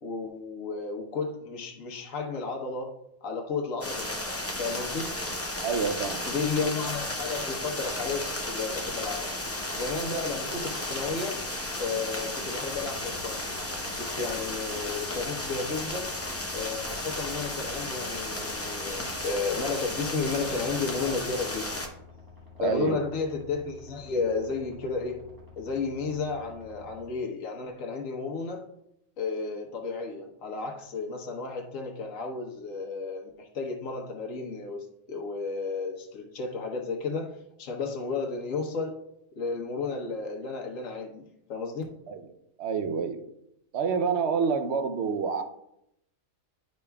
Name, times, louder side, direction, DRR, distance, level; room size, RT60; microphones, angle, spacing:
voice 1, 0.0-2.9 3.2-5.1 6.2-9.3 9.7-11.4 11.8-13.5 13.8-16.1 16.5-21.8 22.6-25.2 25.6-28.6 29.2-38.9 39.4-41.9, left 4 dB, 65° left, 1 dB, 1.4 m, -33 dB
sound 1, 3.8-21.9, left 1 dB, 20° left, 0.4 m, -34 dB
voice 2, 5.6-6.2 22.6-23.0 42.1-42.2 42.6-43.2 43.7-45.4, right 5 dB, 60° right, 7 dB, 0.8 m, -27 dB
sound 2, 12.6-27.1, left 4 dB, 15° right, 1.4 m, -50 dB
10.5 x 5.2 x 2.3 m, 0.79 s
omnidirectional pair, 1.5 m